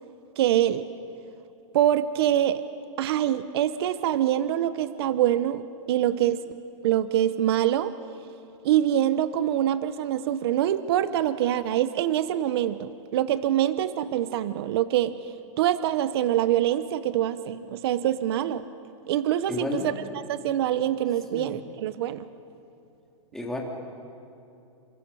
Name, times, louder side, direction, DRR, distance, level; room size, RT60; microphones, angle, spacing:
voice 1, 0.4-0.8 1.7-2.6 3.0-5.6 5.9-6.4 6.8-7.9 8.6-15.2 15.6-18.6 19.1-19.9 20.3-22.3, right 11 dB, 50° right, 13 dB, 0.8 m, -24 dB
voice 2, 19.5-20.0 21.3-21.6 23.3-23.6, left 2 dB, 5° left, -1 dB, 2.6 m, -32 dB
29.0 x 26.0 x 5.5 m, 2.7 s
supercardioid pair, 165°, 17 cm